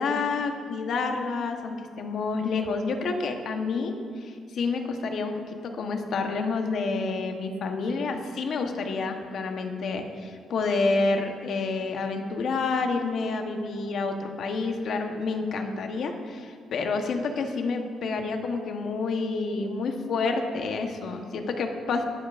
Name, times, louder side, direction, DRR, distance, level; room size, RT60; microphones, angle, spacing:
voice 1, 0.0-22.0, left 4 dB, 65° left, 4 dB, 1.1 m, -29 dB
21.5 x 7.2 x 2.5 m, 2.1 s
cardioid pair, 90°, 0 cm